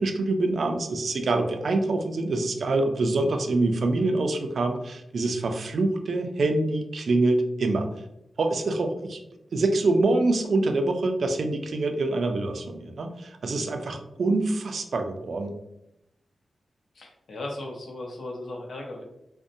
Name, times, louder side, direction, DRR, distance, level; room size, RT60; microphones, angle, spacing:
voice 1, 0.0-7.9 8.4-9.2 9.5-15.6, right 2 dB, 65° right, 6 dB, 0.3 m, -25 dB
voice 2, 17.0-19.0, left 1 dB, 75° left, 0 dB, 0.6 m, -36 dB
2.6 x 2.0 x 2.5 m, 0.86 s
wide cardioid pair, 125°, 0 cm